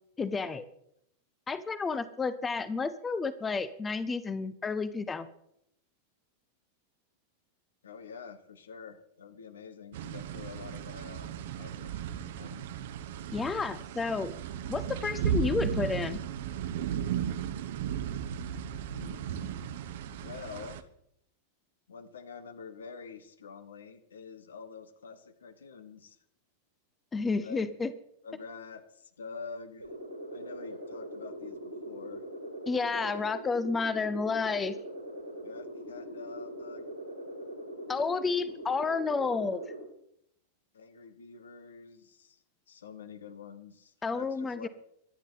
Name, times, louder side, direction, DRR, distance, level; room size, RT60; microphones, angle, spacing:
voice 1, 0.2-0.7 1.5-5.3 13.3-14.3 14.7-16.2 27.1-27.9 32.7-34.8 37.9-39.6 44.0-44.7, left 4 dB, 15° left, 14 dB, 0.8 m, -31 dB
voice 2, 7.8-12.6 18.9-19.6 20.2-20.8 21.9-26.2 27.4-27.7 28.2-29.9 30.3-32.2 32.9-33.2 35.4-36.9 40.7-42.4 42.7-44.7, left 5 dB, 70° left, 12 dB, 1.3 m, -47 dB
sound 1, 9.9-20.8, right 8 dB, 55° right, 1.0 m, -35 dB
sound 2, 29.8-39.8, equal, 90° right, 3.2 m, -42 dB
24.0 x 9.9 x 4.1 m, 0.75 s
figure-of-eight pair, 90°, 0 cm